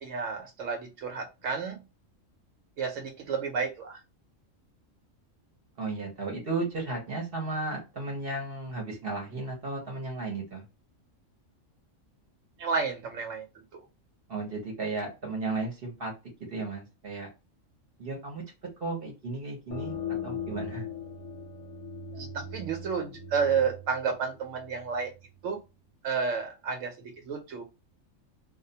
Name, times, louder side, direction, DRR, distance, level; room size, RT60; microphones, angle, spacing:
voice 1, 0.0-1.8 2.8-4.0 12.6-13.8 22.1-25.1 25.4-25.6 26.0-27.6, right 5 dB, 80° right, 3 dB, 0.9 m, -31 dB
voice 2, 5.8-10.7 14.3-16.1 16.5-17.3 18.0-18.4 18.8-20.0 20.2-20.8, right 3 dB, 50° right, 0 dB, 0.9 m, -34 dB
sound 1, 19.7-25.1, left 4 dB, 75° left, 1.1 m, -39 dB
2.4 x 2.1 x 2.6 m, 0.27 s
omnidirectional pair, 1.3 m